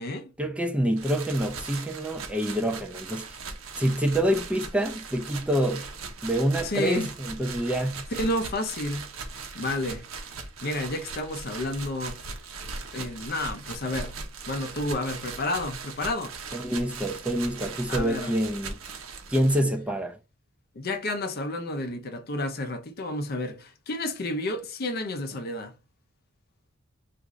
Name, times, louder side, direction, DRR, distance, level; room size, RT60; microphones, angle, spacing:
voice 1, 0.4-3.2 3.8-5.9 6.2-8.0 16.5-18.8 19.3-20.2, right 1 dB, 5° right, 0.5 m, -26 dB
sound 1, 1.0-19.6, right 4 dB, 85° right, 0.8 m, -39 dB
voice 2, 6.6-7.1 8.2-9.1 9.5-10.0 10.6-12.2 12.9-14.2 14.5-16.3 17.9-18.3 20.8-25.7, left 2 dB, 50° left, 0.6 m, -30 dB
3.5 x 2.5 x 3.0 m
head